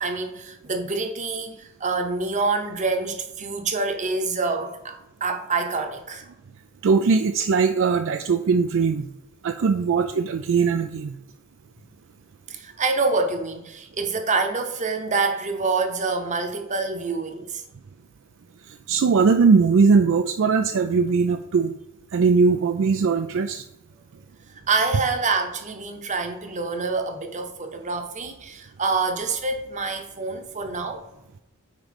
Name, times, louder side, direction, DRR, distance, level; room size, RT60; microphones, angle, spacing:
voice 1, 0.0-6.3 12.5-17.6 24.7-31.0, right 3 dB, 35° right, 0.9 m, -26 dB
voice 2, 6.8-9.1 9.4-11.1 18.7-21.7 22.1-23.7, right 5 dB, 60° right, 0.4 m, -20 dB
9.0 x 3.1 x 5.1 m
head